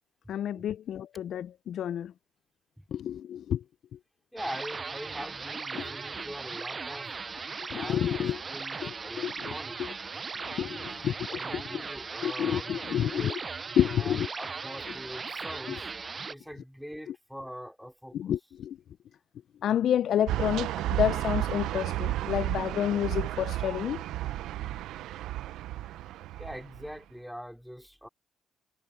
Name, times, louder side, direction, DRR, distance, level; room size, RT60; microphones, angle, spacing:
voice 1, 0.3-2.1 2.9-3.6 5.7-5.9 7.7-8.4 8.8-9.3 9.8-9.9 10.4-10.8 11.0-11.4 11.7-11.8 12.2-13.4 13.8-14.3 15.7-15.8 17.1-17.2 18.1-18.8 19.6-24.0, left 10 dB, 70° left, 0.3 m, -29 dB
voice 2, 4.3-7.1 7.7-9.8 10.2-10.3 10.7-11.0 11.3-13.4 14.0-15.9 16.3-18.3 26.4-28.1, equal, ahead, 4.5 m, -43 dB
sound 1, 4.4-16.3, right 4 dB, 35° right, 0.4 m, -38 dB
sound 2, 20.3-26.9, right 15 dB, 85° right, 0.6 m, -32 dB
cardioid pair, 90°, 0 cm